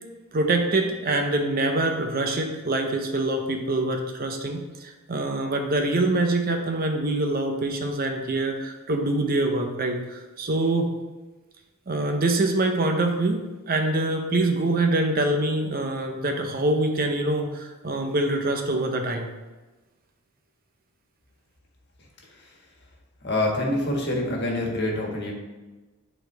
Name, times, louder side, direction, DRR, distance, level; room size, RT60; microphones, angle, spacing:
voice 1, 0.3-10.9 11.9-19.3, right 2 dB, 45° right, 4 dB, 0.8 m, -25 dB
voice 2, 23.2-25.3, left 1 dB, 50° left, -1 dB, 1.6 m, -26 dB
11.0 x 4.3 x 3.3 m, 1.2 s
head